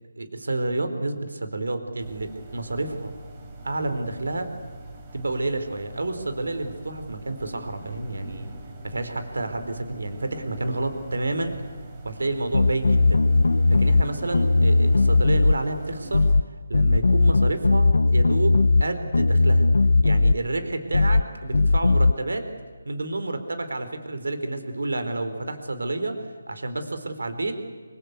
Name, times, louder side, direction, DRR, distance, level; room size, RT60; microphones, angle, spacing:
voice 1, 0.2-3.1 3.6-4.5 5.1-8.5 8.8-11.5 12.0-13.2 13.7-16.2 16.7-19.7 20.0-22.5 22.9-27.6, right 2 dB, 80° right, 8 dB, 3.9 m, -29 dB
sound 1, 2.0-16.4, right 2 dB, 20° right, 3.4 m, -42 dB
sound 2, 12.5-14.1 14.3-15.6 16.1-16.5 16.7-18.9 19.1-20.4 20.9-21.3 21.5-22.1, left 3 dB, 80° left, 0.7 m, -18 dB
26.5 x 24.5 x 8.2 m, 1.5 s
hypercardioid pair, 170°, 0 cm